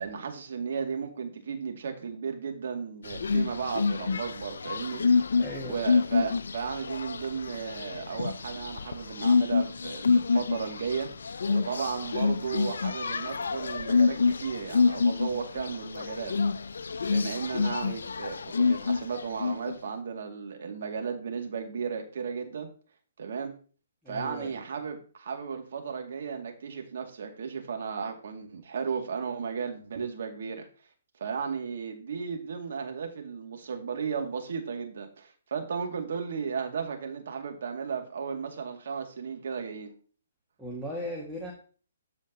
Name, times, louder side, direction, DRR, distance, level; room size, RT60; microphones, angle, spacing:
voice 1, 0.0-5.2 5.6-16.4 17.1-22.7 23.2-23.5 24.1-30.7 31.2-39.9, right 6 dB, 65° right, 3 dB, 2.2 m, -35 dB
sound 1, 3.0-19.8, left 4 dB, 80° left, 0.7 m, -27 dB
voice 2, 5.4-5.8 24.0-24.5 40.6-41.5, equal, ahead, -4 dB, 1.7 m, -37 dB
13.5 x 5.1 x 2.9 m, 0.40 s
hypercardioid pair, 145°, 0 cm